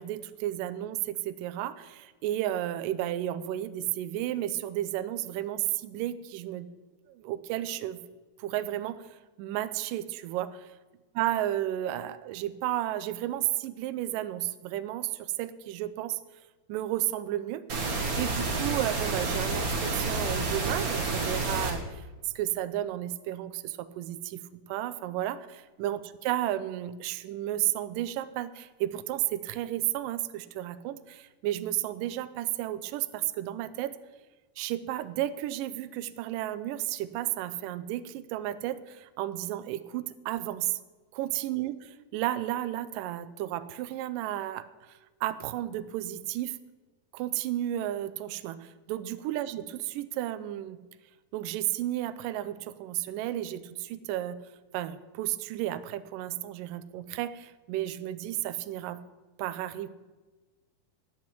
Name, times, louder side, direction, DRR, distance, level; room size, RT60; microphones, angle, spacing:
voice 1, 0.0-6.7 7.1-8.0 8.4-9.1 9.4-10.7 11.2-16.2 16.7-17.7 18.2-22.0 22.4-34.0 34.6-40.8 41.1-41.8 42.1-46.6 47.1-50.8 51.3-54.4 54.7-59.0 59.4-59.9, right 13 dB, 80° right, 13 dB, 2.1 m, -33 dB
sound 1, 17.7-21.7, right 3 dB, 45° right, 1.1 m, -29 dB
10.5 x 8.8 x 7.8 m, 1.2 s
omnidirectional pair, 4.3 m